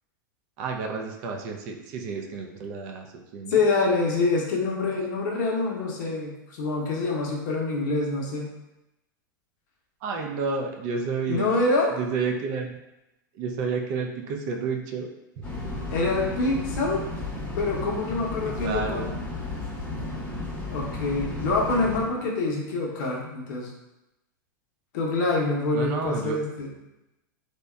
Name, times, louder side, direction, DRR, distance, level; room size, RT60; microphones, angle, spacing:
voice 1, 0.6-3.6 10.0-11.5 11.9-12.8 13.3-15.1 15.4-15.5 18.6-19.1 25.7-26.4, right 5 dB, 50° right, 3 dB, 0.4 m, -30 dB
voice 2, 3.5-8.5 11.3-11.9 15.9-17.0 17.5-19.1 20.7-23.7 24.9-26.7, left 3 dB, 60° left, -1 dB, 0.6 m, -26 dB
sound 1, 15.4-22.0, left 2 dB, 10° left, 0.7 m, -33 dB
2.7 x 2.2 x 2.2 m, 0.94 s
hypercardioid pair, 100°, 11 cm